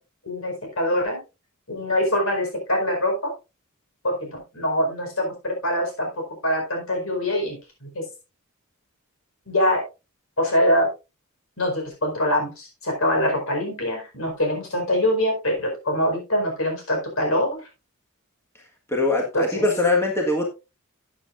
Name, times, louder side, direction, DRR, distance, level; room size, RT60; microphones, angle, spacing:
voice 1, 0.2-1.2 1.7-3.3 4.0-6.1 6.4-8.0 9.5-9.8 10.4-10.9 11.6-17.5 19.3-19.6, left 1 dB, 65° left, 4.6 m, -24 dB
voice 2, 18.9-20.5, left 2 dB, 10° left, 1.5 m, -22 dB
13.5 x 8.6 x 2.5 m
head